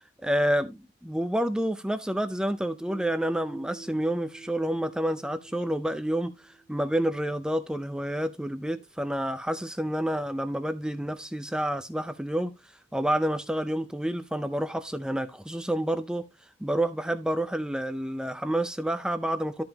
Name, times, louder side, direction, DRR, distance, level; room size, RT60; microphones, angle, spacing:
voice 1, 0.2-12.5 12.9-16.2 16.6-19.6, right 1 dB, 5° right, 0.5 m, -29 dB
Bass guitar, 2.9-7.3, right 4 dB, 25° left, 2.3 m, -48 dB
12.5 x 5.4 x 2.9 m
head